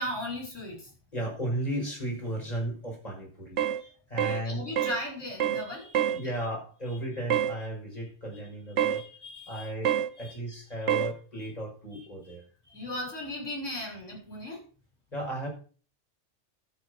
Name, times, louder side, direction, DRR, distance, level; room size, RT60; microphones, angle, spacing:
voice 1, 0.0-0.9 3.8-6.4 8.8-9.7 10.2-10.4 10.8-10.9 11.3-11.5 11.9-12.3 12.6-14.6, left 1 dB, 75° left, 0 dB, 6.7 m, -38 dB
voice 2, 1.1-3.6 4.1-4.7 6.2-9.0 9.5-12.4 15.1-15.5, right 1 dB, 30° left, -1 dB, 5.8 m, -35 dB
sound 1, 3.6-3.8 4.2-4.4 4.8-5.0 5.4-5.7 5.9-6.2 7.3-7.6 8.8-9.0 9.9-10.1 10.9-11.1, right 10 dB, 70° right, 1.1 m, -26 dB
12.5 x 6.9 x 6.5 m, 0.40 s
omnidirectional pair, 1.3 m